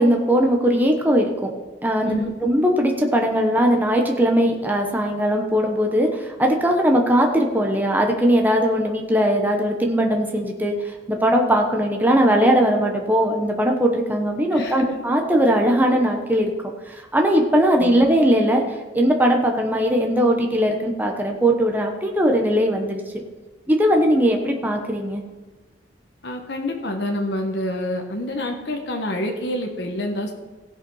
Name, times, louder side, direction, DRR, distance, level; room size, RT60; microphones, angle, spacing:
voice 1, 0.0-1.5 1.8-16.5 16.9-23.0 23.7-25.2, equal, 10° right, 2 dB, 1.0 m, -19 dB
voice 2, 2.0-2.3 14.5-15.0 17.8-17.9 26.2-30.3, left 1 dB, 70° left, 3 dB, 1.3 m, -27 dB
16.5 x 5.7 x 5.6 m, 1.3 s
head